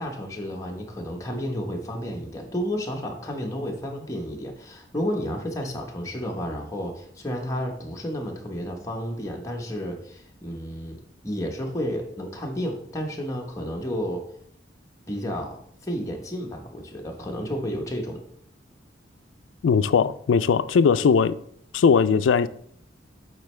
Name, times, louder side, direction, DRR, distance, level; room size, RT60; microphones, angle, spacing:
voice 1, 0.0-14.3 15.1-18.2, equal, 15° left, 1.0 m, -31 dB
voice 2, 19.6-21.4 21.7-22.5, left 6 dB, 90° left, 0.3 m, -19 dB
8.1 x 4.4 x 3.2 m
head